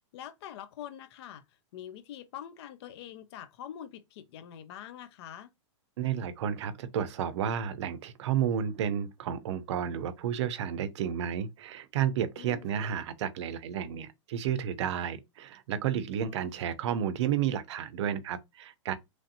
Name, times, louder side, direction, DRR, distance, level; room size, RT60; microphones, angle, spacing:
voice 1, 0.1-1.4 1.7-5.5 12.4-12.7 16.2-16.4, left 10 dB, 55° left, 0.4 m, -44 dB
voice 2, 6.0-18.9, right 9 dB, 60° right, 0.5 m, -31 dB
3.1 x 2.6 x 2.6 m
supercardioid pair, 150°, 16 cm